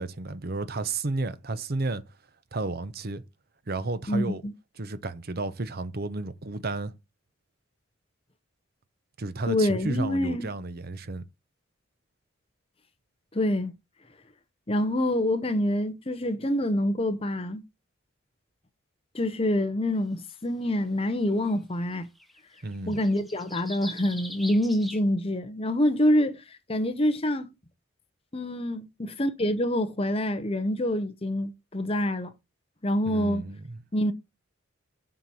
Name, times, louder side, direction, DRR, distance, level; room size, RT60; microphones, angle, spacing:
voice 1, 0.0-2.0 2.5-3.2 3.7-4.4 4.8-6.9 9.2-11.2 22.6-23.0 33.1-33.8, right 3 dB, 50° right, 0.8 m, -32 dB
voice 2, 4.1-4.5 9.5-10.5 13.3-13.7 14.7-17.6 19.1-22.1 22.9-26.4 26.7-27.5 28.3-32.3 32.8-33.4 33.9-34.1, left 1 dB, 30° left, 0.9 m, -26 dB
sound 1, 20.3-20.4 21.5-21.6 21.8-25.0, equal, ahead, 1.0 m, -42 dB
7.5 x 4.5 x 7.0 m
head